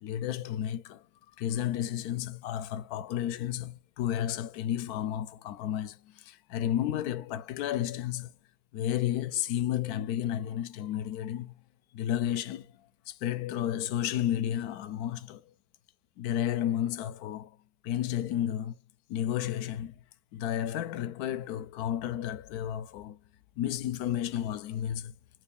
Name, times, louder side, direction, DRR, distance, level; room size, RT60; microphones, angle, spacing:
voice 1, 0.0-1.0 1.4-8.3 8.7-11.5 11.9-15.4 16.2-17.5 17.8-18.7 19.1-20.0 20.3-23.2 23.6-25.1, left 11 dB, 90° left, 1.1 m, -32 dB
3.4 x 2.5 x 3.4 m
omnidirectional pair, 1.6 m